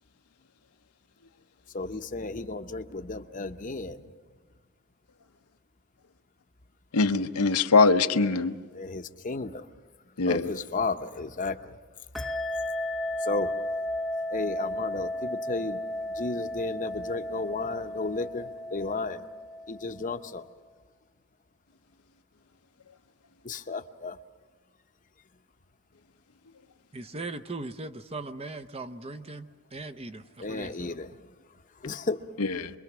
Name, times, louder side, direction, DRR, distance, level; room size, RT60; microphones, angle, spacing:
voice 1, 1.7-4.0 8.7-9.7 10.3-11.6 13.3-13.5 14.3-15.8 16.2-19.2 19.7-20.5 23.4-24.2 30.4-31.1 31.8-32.2, left 3 dB, 35° left, 8 dB, 0.8 m, -33 dB
voice 2, 6.9-8.5 10.2-10.5 32.4-32.7, left 4 dB, 85° left, 7 dB, 0.9 m, -22 dB
sound 1, 12.1-20.3, left 1 dB, ahead, 0.9 m, -34 dB
voice 3, 26.9-31.0, right 2 dB, 25° right, 9 dB, 0.7 m, -39 dB
26.5 x 22.5 x 6.1 m, 1.4 s
head